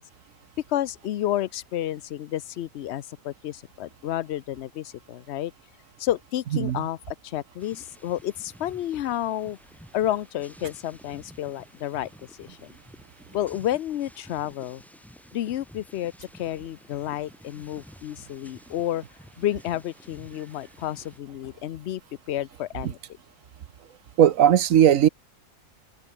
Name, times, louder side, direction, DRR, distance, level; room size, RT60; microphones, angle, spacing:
voice 1, 0.7-5.5 6.0-9.6 9.9-12.1 12.4-12.8 13.3-14.8 15.3-19.0 19.4-22.0 22.3-23.0, left 12 dB, 60° left, 0.8 m, -30 dB
sound 1, 7.6-21.2, equal, ahead, 2.1 m, -51 dB
voice 2, 24.2-25.1, right 10 dB, 70° right, 1.2 m, -17 dB
open air
omnidirectional pair, 1.5 m